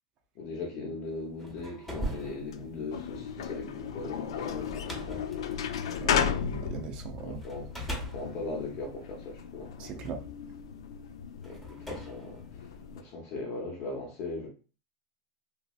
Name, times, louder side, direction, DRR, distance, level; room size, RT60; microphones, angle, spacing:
voice 1, 0.3-5.2 7.2-7.7 8.1-10.1 11.4-14.5, left 3 dB, 50° left, 0.8 m, -39 dB
sound 1, 1.2-6.8 7.4-9.9 10.7-10.8 11.4-13.1, equal, 5° left, 0.8 m, -41 dB
sound 2, 2.3-13.0, left 7 dB, 90° left, 0.3 m, -35 dB
voice 2, 6.0-7.4 9.8-10.2, right 5 dB, 40° right, 0.4 m, -39 dB
3.1 x 2.6 x 2.4 m
supercardioid pair, 140°, 3 cm